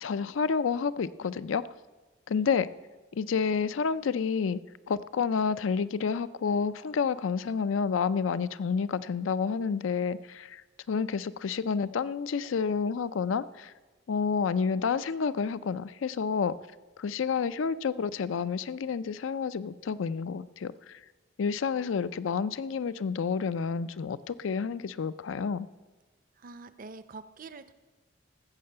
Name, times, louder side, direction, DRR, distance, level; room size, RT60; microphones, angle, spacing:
voice 1, 0.0-1.6 2.3-2.7 3.2-4.6 4.9-10.5 10.9-13.7 14.1-16.6 17.0-20.7 21.4-25.7, left 5 dB, 90° left, 15 dB, 0.4 m, -29 dB
voice 2, 26.4-27.7, right 4 dB, 45° right, 13 dB, 0.5 m, -45 dB
14.0 x 6.6 x 7.8 m, 1.2 s
head